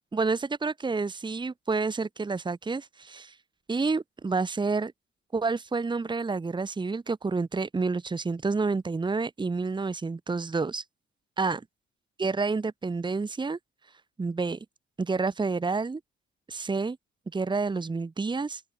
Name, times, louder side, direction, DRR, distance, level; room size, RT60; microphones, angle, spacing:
voice 1, 0.1-3.3 3.7-4.9 5.3-10.8 11.4-11.6 12.2-13.6 14.2-14.6 15.0-16.0 16.5-17.0 17.3-18.6, right 4 dB, 25° right, 1.6 m, -29 dB
open air
cardioid pair, 90°, 20 cm